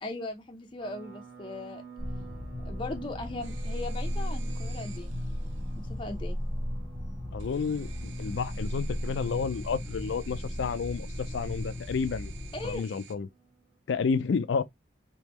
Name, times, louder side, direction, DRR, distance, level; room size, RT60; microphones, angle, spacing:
voice 1, 0.0-1.8 2.6-5.1 5.8-6.4 12.5-12.8, left 2 dB, 25° left, 0.6 m, -38 dB
sound 1, 0.8-13.7, right 7 dB, 50° right, 1.0 m, -52 dB
sound 2, 2.0-12.8, left 1 dB, 5° right, 1.0 m, -35 dB
sound 3, 3.4-5.7 7.4-13.1, right 6 dB, 75° right, 0.5 m, -51 dB
voice 2, 7.3-12.3 12.6-13.3 13.9-14.6, left 5 dB, 75° left, 0.4 m, -30 dB
3.5 x 3.0 x 3.0 m
head